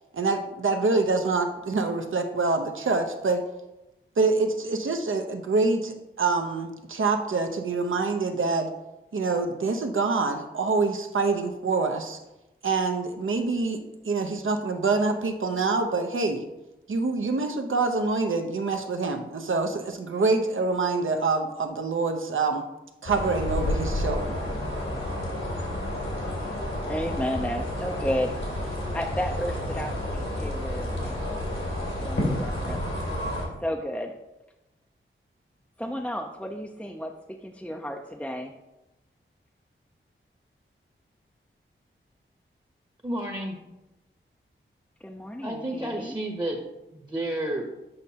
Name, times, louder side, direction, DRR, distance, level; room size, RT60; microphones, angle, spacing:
voice 1, 0.1-3.4 4.2-8.7 9.1-12.2 12.6-16.4 16.9-22.7 23.0-24.4, right 3 dB, 70° right, 5 dB, 0.8 m, -26 dB
sound 1, 23.0-33.4, left 1 dB, 90° left, 2.5 m, -30 dB
voice 2, 26.9-31.4 31.9-32.8 33.6-34.2 35.8-38.5 45.0-46.2, equal, 5° left, 2 dB, 0.5 m, -33 dB
voice 3, 43.0-43.6 45.4-46.6 47.0-47.7, right 1 dB, 20° right, 2 dB, 0.9 m, -30 dB
8.0 x 5.4 x 2.8 m, 0.97 s
wide cardioid pair, 60°, 21 cm